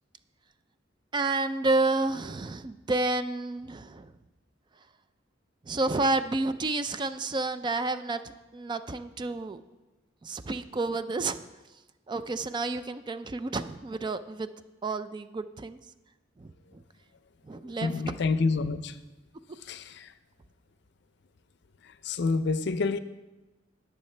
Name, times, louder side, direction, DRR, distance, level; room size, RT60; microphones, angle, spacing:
voice 1, 1.1-4.1 5.7-9.6 10.2-11.4 12.1-14.5 14.8-15.8 16.4-16.8 17.4-17.9, right 3 dB, 25° right, 0.4 m, -30 dB
voice 2, 17.8-19.0 19.6-20.1 21.8-23.0, left 4 dB, 65° left, 0.5 m, -28 dB
19.5 x 6.5 x 3.3 m
head